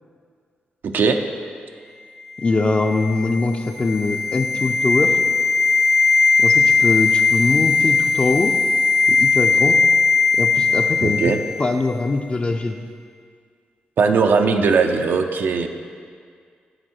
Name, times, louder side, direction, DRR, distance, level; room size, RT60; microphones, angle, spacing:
voice 1, 0.8-1.2 11.0-11.4 14.0-15.7, right 5 dB, 75° right, 5 dB, 0.4 m, -19 dB
sound 1, 2.4-11.6 11.9-12.0, left 4 dB, 50° left, 0.8 m, -18 dB
voice 2, 2.4-5.2 6.4-8.5 9.1-9.8 10.3-11.3 11.6-12.8, left 3 dB, 35° left, 4 dB, 0.4 m, -22 dB
7.9 x 4.4 x 4.3 m, 2.1 s
cardioid pair, 75°, 3 cm